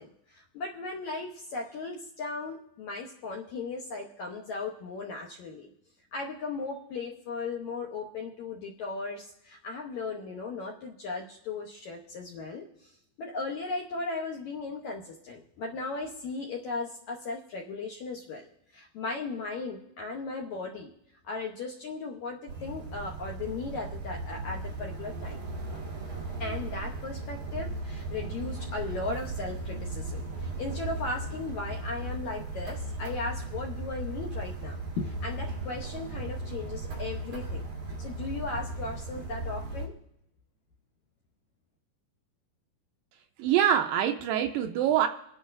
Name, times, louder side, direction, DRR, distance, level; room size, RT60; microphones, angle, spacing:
voice 1, 0.0-5.7 6.1-12.9 13.2-20.9 21.2-25.5 26.4-37.6 38.0-39.9, left 3 dB, 75° left, 0 dB, 1.7 m, -37 dB
sound 1, 22.5-39.9, right 2 dB, 55° right, 3.9 m, -36 dB
voice 2, 43.4-45.1, right 10 dB, 80° right, 6 dB, 2.1 m, -24 dB
27.5 x 10.0 x 2.6 m, 0.80 s
omnidirectional pair, 4.4 m